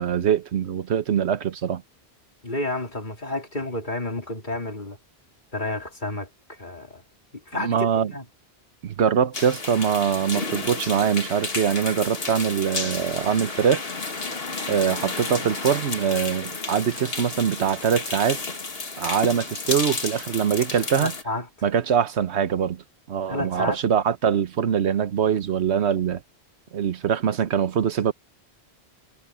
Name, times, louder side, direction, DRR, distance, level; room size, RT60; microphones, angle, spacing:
voice 1, 0.0-1.8 7.6-8.1 8.8-13.8 14.7-18.4 19.0-21.1 21.6-22.8 23.1-26.2 26.7-28.1, right 8 dB, 85° right, 1.2 m, -23 dB
voice 2, 2.4-5.0 5.5-7.0 7.5-8.2 20.9-21.5 23.3-23.8, left 2 dB, 45° left, 3.6 m, -30 dB
sound 1, 9.3-21.2, left 3 dB, 65° left, 2.2 m, -31 dB
omnidirectional pair, 1.1 m